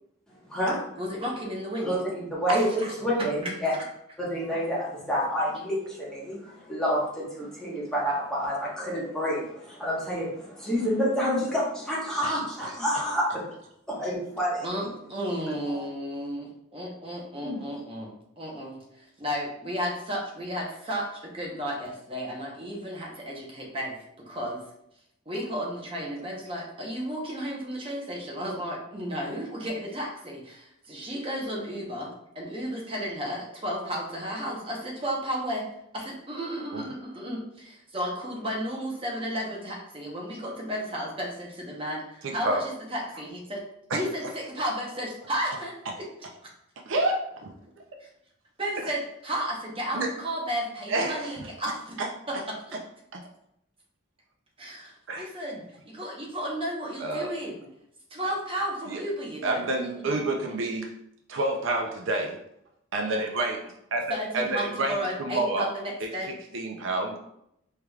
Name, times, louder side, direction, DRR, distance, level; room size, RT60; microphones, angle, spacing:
voice 1, 1.0-2.0 2.5-2.9 3.4-3.9 14.6-24.6 25.3-35.6 35.9-43.6 43.9-46.1 48.0-48.1 48.6-52.0 52.3-52.8 54.6-57.7 58.1-60.2 64.1-66.4, equal, 25° right, -2 dB, 0.9 m, -33 dB
voice 2, 2.3-2.7 3.0-3.7 4.2-6.4 6.7-13.2 14.0-14.7 15.6-15.8 17.4-17.6, equal, 5° left, -7 dB, 1.2 m, -28 dB
voice 3, 42.2-42.6 43.9-44.0 46.9-47.1 47.4-47.5 48.8-48.9 49.9-50.1 50.9-51.5 52.0-52.1 53.1-53.2 55.1-55.3 57.0-57.3 58.9-59.0 59.4-60.9 61.3-62.4 62.9-64.0 64.3-65.7 66.0-66.1 66.5-67.2, right 2 dB, 70° right, 2 dB, 0.5 m, -28 dB
4.7 x 3.3 x 2.3 m, 0.78 s
head